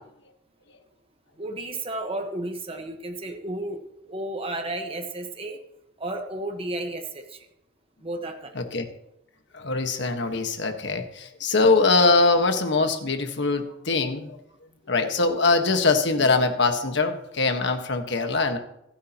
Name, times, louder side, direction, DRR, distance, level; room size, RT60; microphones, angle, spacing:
voice 1, 1.4-3.8 4.0-5.6 6.0-7.5 8.0-8.5, right 2 dB, 30° right, 4 dB, 1.3 m, -32 dB
voice 2, 9.5-14.3 14.9-18.6, left 3 dB, 65° left, 6 dB, 1.4 m, -22 dB
25.5 x 8.6 x 3.0 m, 0.80 s
head